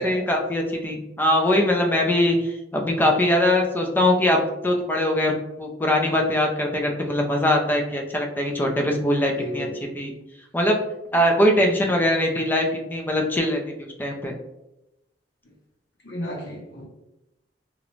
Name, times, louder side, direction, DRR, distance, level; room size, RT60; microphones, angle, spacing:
voice 1, 0.0-9.7 9.9-10.1 10.5-10.8 11.1-14.3, left 1 dB, 10° left, 1 dB, 0.3 m, -22 dB
voice 2, 9.3-9.7 11.8-12.0 16.0-16.9, equal, 85° left, -2 dB, 0.8 m, -33 dB
2.4 x 2.1 x 3.0 m, 0.91 s
head